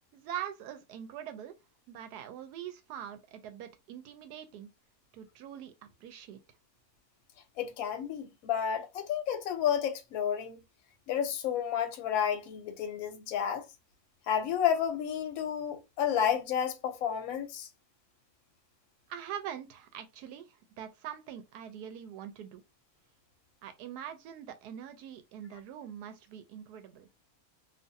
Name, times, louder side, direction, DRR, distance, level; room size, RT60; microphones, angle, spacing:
voice 1, 0.1-1.5 1.9-4.7 5.1-6.4 19.1-22.6 23.6-27.1, right 9 dB, 90° right, 1.1 m, -43 dB
voice 2, 7.6-10.6 11.1-13.7 14.3-17.7, left 9 dB, 70° left, 1.0 m, -31 dB
2.6 x 2.5 x 2.6 m
omnidirectional pair, 1.6 m